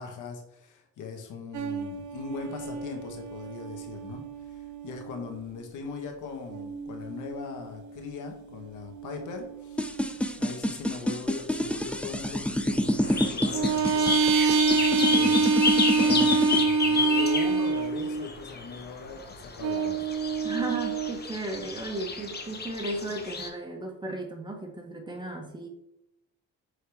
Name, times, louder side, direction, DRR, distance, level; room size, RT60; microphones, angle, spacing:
voice 1, 0.0-10.0 10.4-14.2 14.7-15.4 15.9-20.1, left 5 dB, 85° left, 4 dB, 1.2 m, -40 dB
sound 1, 1.5-5.5 6.5-10.6 13.5-18.3 19.6-21.1, right 4 dB, 70° right, 1.1 m, -28 dB
sound 2, 9.8-16.6, equal, 5° left, 0.5 m, -28 dB
sound 3, 13.0-23.5, left 4 dB, 35° left, 1.0 m, -32 dB
voice 2, 20.4-25.7, right 2 dB, 15° right, 2 dB, 1.4 m, -35 dB
6.5 x 4.8 x 3.4 m, 0.81 s
cardioid pair, 90°, 30 cm